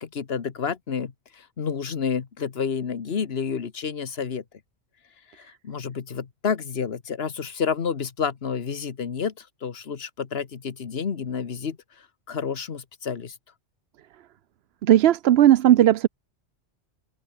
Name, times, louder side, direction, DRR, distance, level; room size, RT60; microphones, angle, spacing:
voice 1, 0.0-4.4 5.3-11.8 12.3-13.3, left 6 dB, 65° left, 1.5 m, -30 dB
voice 2, 14.9-16.1, right 12 dB, 70° right, 0.8 m, -16 dB
open air
omnidirectional pair, 1.1 m